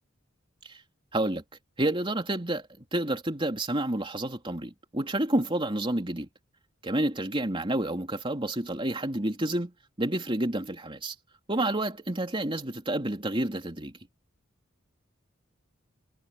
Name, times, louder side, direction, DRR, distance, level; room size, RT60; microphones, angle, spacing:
voice 1, 1.1-1.4 1.8-6.3 6.8-11.1 11.5-13.9, right 1 dB, 25° right, 3.3 m, -29 dB
head